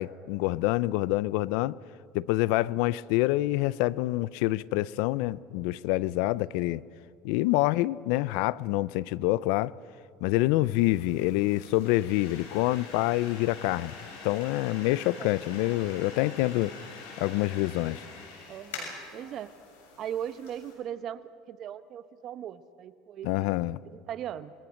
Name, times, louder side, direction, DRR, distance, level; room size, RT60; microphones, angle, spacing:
voice 1, 0.0-1.8 2.1-6.8 7.2-9.7 10.2-13.9 14.2-16.7 17.2-18.0 23.2-23.8, left 18 dB, 75° left, 20 dB, 0.5 m, -26 dB
voice 2, 10.5-10.9 15.2-15.4 18.5-19.5 20.0-23.5 23.8-24.5, right 10 dB, 50° right, 13 dB, 1.0 m, -39 dB
sound 1, 10.7-20.7, left 4 dB, 90° left, 7.2 m, -45 dB
29.0 x 22.0 x 6.5 m, 2.5 s
supercardioid pair, 105°, 0 cm